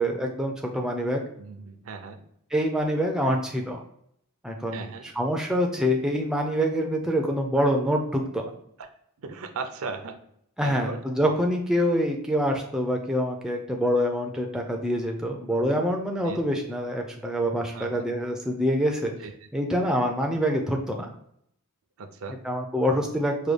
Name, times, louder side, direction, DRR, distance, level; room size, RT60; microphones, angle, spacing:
voice 1, 0.0-1.2 2.5-3.8 4.4-8.5 10.6-19.1 19.5-21.1 22.4-23.5, equal, 5° right, 1 dB, 0.4 m, -26 dB
voice 2, 1.4-2.2 4.7-5.1 8.8-8.9 9.2-10.2 10.6-11.0 16.2-16.4 17.7-18.0 19.2-19.5 22.0-22.4, right 4 dB, 65° right, 7 dB, 0.5 m, -37 dB
4.8 x 2.2 x 3.3 m, 0.71 s
head